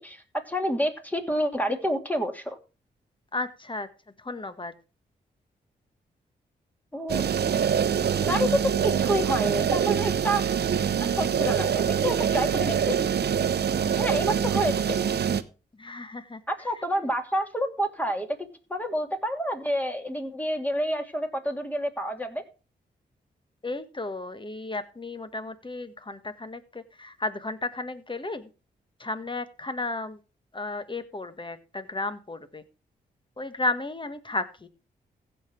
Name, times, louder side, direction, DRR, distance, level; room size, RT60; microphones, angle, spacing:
voice 1, 0.0-2.6 6.9-7.2 8.2-10.4 11.2-13.0 13.9-15.1 16.5-22.4, equal, 10° left, 4 dB, 2.8 m, -28 dB
voice 2, 3.3-3.9 4.2-4.7 15.8-16.7 23.6-28.5 29.0-30.2 30.5-32.6 33.4-34.7, left 2 dB, 25° left, 11 dB, 1.6 m, -33 dB
sound 1, 7.1-15.4, right 8 dB, 65° right, 0.8 m, -25 dB
15.5 x 5.8 x 4.5 m, 0.33 s
supercardioid pair, 45°, 18 cm